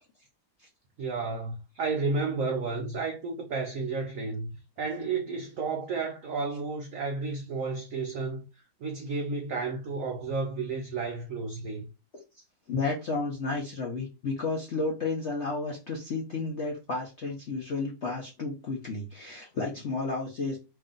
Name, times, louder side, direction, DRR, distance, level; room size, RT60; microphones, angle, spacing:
voice 1, 1.0-4.5 4.8-8.4 8.8-11.8, right 4 dB, 85° right, 0.7 m, -32 dB
voice 2, 12.3-20.6, left 3 dB, 65° left, 0.7 m, -32 dB
3.2 x 2.6 x 3.7 m
omnidirectional pair, 2.2 m